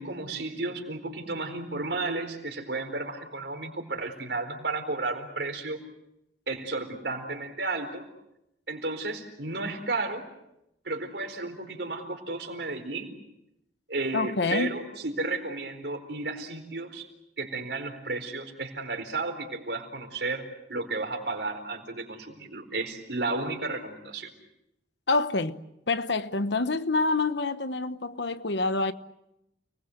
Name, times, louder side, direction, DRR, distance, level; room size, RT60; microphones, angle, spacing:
voice 1, 0.0-5.8 6.5-8.1 8.7-10.3 10.8-13.1 13.9-17.1 17.4-20.4 20.7-24.3, right 3 dB, 80° right, 4.4 m, -33 dB
voice 2, 14.1-14.8 25.1-25.6 25.9-28.9, left 3 dB, 85° left, 1.1 m, -27 dB
30.0 x 20.5 x 8.0 m
head